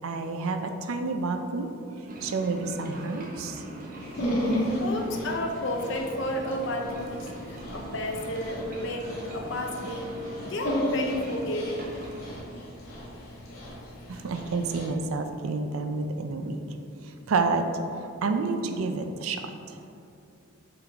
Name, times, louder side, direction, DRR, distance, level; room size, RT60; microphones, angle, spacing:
voice 1, 0.0-1.7 2.2-3.6 14.1-16.6 17.0-17.6 18.0-19.8, right 3 dB, 75° right, 7 dB, 0.4 m, -29 dB
sound 1, 2.1-12.4, right 1 dB, 40° right, 0.8 m, -42 dB
Dog, 4.0-14.9, equal, 85° left, 1.4 m, -34 dB
voice 2, 4.8-10.1 10.5-11.9, left 1 dB, 60° left, 3 dB, 0.6 m, -32 dB
7.5 x 3.9 x 3.4 m, 2.7 s
head